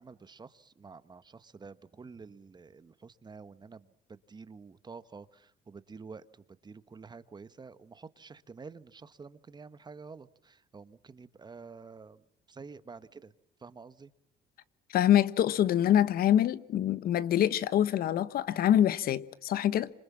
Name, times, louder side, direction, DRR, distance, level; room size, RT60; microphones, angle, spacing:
voice 1, 0.0-6.3 6.6-12.2 12.5-13.3 13.6-14.1, right 4 dB, 25° right, 1.3 m, -49 dB
voice 2, 14.9-19.9, left 11 dB, 65° left, 1.1 m, -25 dB
27.0 x 26.5 x 7.4 m
cardioid pair, 110°, 17 cm